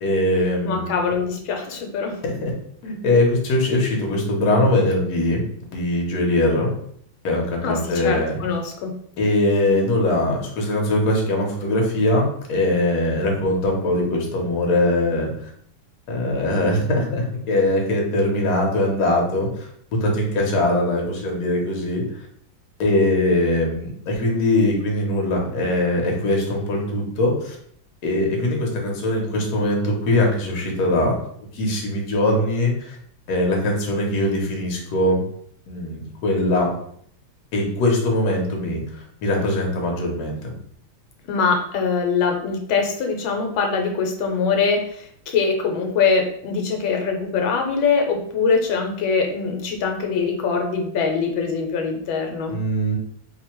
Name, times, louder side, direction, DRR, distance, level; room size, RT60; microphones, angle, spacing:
voice 1, 0.0-0.9 2.2-2.5 2.8-5.4 5.7-6.7 7.2-8.4 9.2-15.3 16.1-19.5 20.0-22.0 22.8-27.6 28.0-31.2 31.5-33.0 33.3-35.2 35.7-36.7 37.5-38.8 39.2-40.4 52.5-53.0, left 1 dB, 60° left, 0 dB, 1.4 m, -21 dB
voice 2, 0.6-2.2 7.6-8.9 41.3-52.6, left 5 dB, 85° left, 3 dB, 1.5 m, -23 dB
3.2 x 2.2 x 4.3 m, 0.66 s
omnidirectional pair, 2.2 m